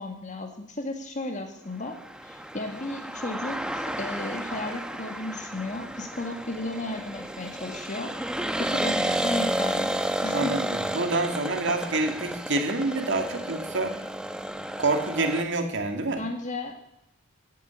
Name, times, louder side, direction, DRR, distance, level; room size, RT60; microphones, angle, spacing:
voice 1, 0.0-9.9 10.2-10.6 16.2-16.8, left 2 dB, 40° left, 5 dB, 2.0 m, -34 dB
sound 1, 2.0-15.4, right 1 dB, 5° right, 1.0 m, -31 dB
voice 2, 10.3-13.9 14.8-16.2, right 2 dB, 65° right, 5 dB, 2.4 m, -27 dB
17.0 x 9.5 x 8.5 m, 0.80 s
head